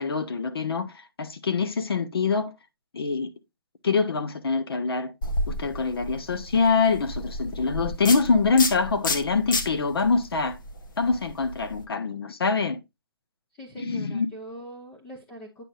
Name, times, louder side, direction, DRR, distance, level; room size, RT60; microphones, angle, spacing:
voice 1, 0.0-2.5 2.9-3.3 3.8-5.1 5.5-10.6 11.0-12.8 13.8-14.3, left 4 dB, 80° left, 1.3 m, -25 dB
sound 1, 5.2-11.8, left 2 dB, 60° left, 1.5 m, -32 dB
voice 2, 13.5-15.6, equal, 10° left, 0.9 m, -42 dB
8.9 x 5.9 x 2.5 m
hypercardioid pair, 170°, 13 cm